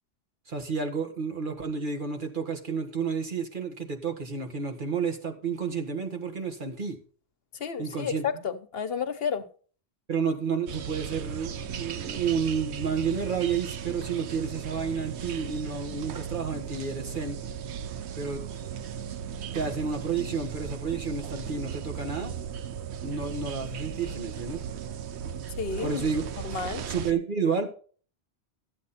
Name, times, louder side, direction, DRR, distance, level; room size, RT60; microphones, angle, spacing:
voice 1, 0.5-7.0 7.8-8.2 10.1-17.4 18.1-18.4 19.5-22.3 23.0-24.6 25.8-26.3 26.9-27.7, right 5 dB, 50° right, 1.7 m, -30 dB
voice 2, 7.6-9.4 25.6-26.0 26.4-26.8, left 6 dB, 65° left, 1.1 m, -31 dB
sound 1, 10.7-27.1, right 8 dB, 80° right, 1.0 m, -37 dB
13.5 x 8.4 x 4.2 m
omnidirectional pair, 1.1 m